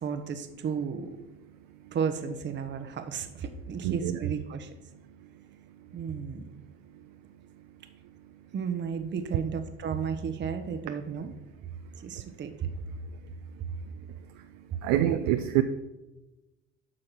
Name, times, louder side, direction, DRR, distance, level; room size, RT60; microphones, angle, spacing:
voice 1, 0.0-1.2 1.9-4.7 5.9-6.6 8.5-11.3 12.0-12.7, right 6 dB, 35° right, 8 dB, 1.0 m, -33 dB
voice 2, 3.8-4.2 14.8-15.6, right 13 dB, 60° right, 8 dB, 0.6 m, -25 dB
10.0 x 6.3 x 4.5 m, 1.0 s
hypercardioid pair, 65°, 32 cm